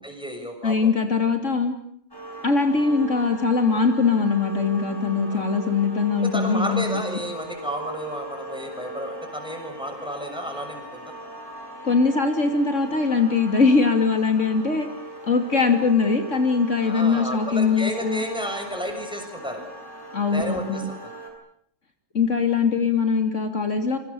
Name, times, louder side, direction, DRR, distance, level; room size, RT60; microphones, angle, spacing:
voice 1, 0.0-0.9 5.3-5.8 6.2-11.1 16.8-19.6 20.3-21.1, equal, 5° right, 4 dB, 7.0 m, -32 dB
voice 2, 0.6-1.7 2.4-7.0 11.8-14.9 15.2-18.2 20.1-20.8 22.1-24.0, left 4 dB, 70° left, 6 dB, 3.2 m, -21 dB
sound 1, 2.1-21.3, right 2 dB, 15° left, 7.1 m, -39 dB
28.0 x 24.5 x 7.2 m, 0.67 s
omnidirectional pair, 1.3 m